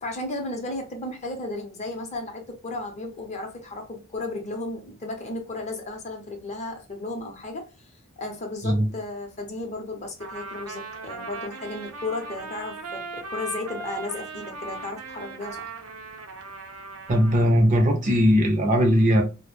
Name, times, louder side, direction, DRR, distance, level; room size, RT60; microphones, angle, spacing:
voice 1, 0.0-7.7 8.2-15.7, left 2 dB, 30° left, 0.6 m, -34 dB
Trumpet, 10.2-17.4, right 3 dB, 85° right, 0.6 m, -38 dB
voice 2, 17.1-19.2, equal, 35° right, 0.5 m, -19 dB
2.2 x 2.0 x 3.1 m
head